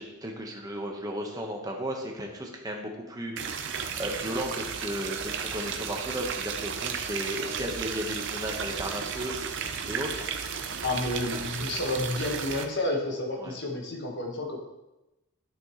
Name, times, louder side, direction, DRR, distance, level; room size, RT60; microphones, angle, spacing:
voice 1, 0.0-3.6 4.0-9.4 9.9-10.1 13.4-13.6, right 1 dB, 15° right, 1 dB, 1.2 m, -35 dB
sound 1, 3.4-12.7, right 6 dB, 55° right, 0.7 m, -34 dB
voice 2, 10.8-14.6, left 2 dB, 55° left, 1 dB, 1.4 m, -30 dB
11.0 x 6.1 x 3.1 m, 0.99 s
head